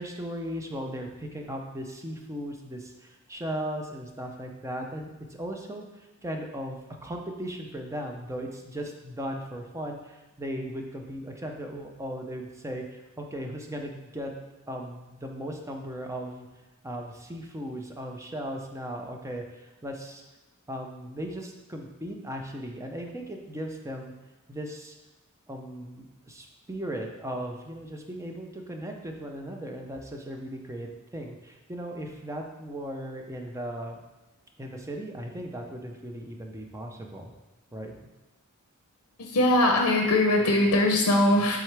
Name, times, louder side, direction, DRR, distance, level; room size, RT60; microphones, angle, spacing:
voice 1, 0.0-14.4 14.7-16.5 16.8-20.2 20.7-24.1 24.5-24.9 25.5-34.0 34.6-37.3 37.7-37.9, equal, 15° right, 2 dB, 0.5 m, -37 dB
voice 2, 39.2-41.6, left 1 dB, 70° left, 2 dB, 0.6 m, -21 dB
7.6 x 3.7 x 3.3 m, 1.1 s
head